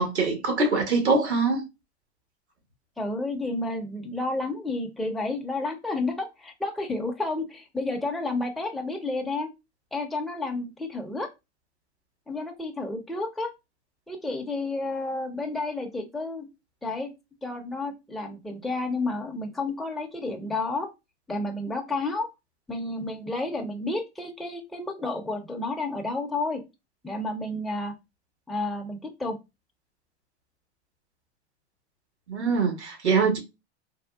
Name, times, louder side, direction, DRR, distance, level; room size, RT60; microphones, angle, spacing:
voice 1, 0.0-1.6 32.3-33.4, right 4 dB, 90° right, 1.1 m, -23 dB
voice 2, 3.0-9.5 9.9-11.3 12.3-13.5 14.1-16.5 16.8-17.1 17.4-20.9 21.3-22.3 22.7-26.6 27.0-27.9 28.5-29.4, left 2 dB, ahead, 0.5 m, -31 dB
3.6 x 2.3 x 2.2 m
hypercardioid pair, 90°, 33 cm